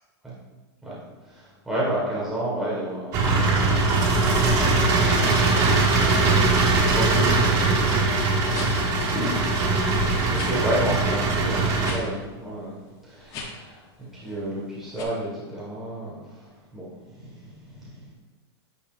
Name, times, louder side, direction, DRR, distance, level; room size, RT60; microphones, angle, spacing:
voice 1, 1.3-3.6 6.6-8.6 9.1-9.3 10.3-12.7 13.1-13.8 14.1-16.2 16.7-16.9 17.1-17.9, right 1 dB, 5° right, -8 dB, 1.5 m, -31 dB
sound 1, 3.1-11.9, right 3 dB, 25° right, 1.1 m, -21 dB
sound 2, 8.5-8.9 9.4-9.5 9.7-12.0 12.3-12.5 13.2-13.7 14.1-14.5 14.9-15.0, left 4 dB, 25° left, 0.8 m, -37 dB
9.0 x 6.4 x 2.5 m, 1.2 s
supercardioid pair, 165°, 14 cm